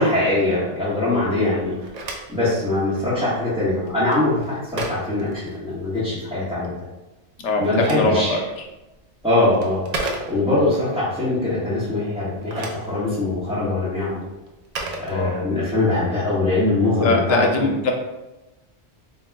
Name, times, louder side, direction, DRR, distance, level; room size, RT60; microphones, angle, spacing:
voice 1, 0.0-1.8 2.3-6.7 7.6-8.3 9.2-9.8 10.3-14.2 15.0-17.7, left 2 dB, 5° right, -13 dB, 0.9 m, -22 dB
Telephone, 1.6-6.1 7.3-10.8 12.2-15.8, right 2 dB, 50° right, 0.5 m, -35 dB
voice 2, 7.4-8.4 15.1-15.3 17.0-17.9, left 2 dB, 85° left, 2 dB, 1.0 m, -21 dB
4.1 x 2.2 x 3.4 m, 1.0 s
omnidirectional pair, 1.2 m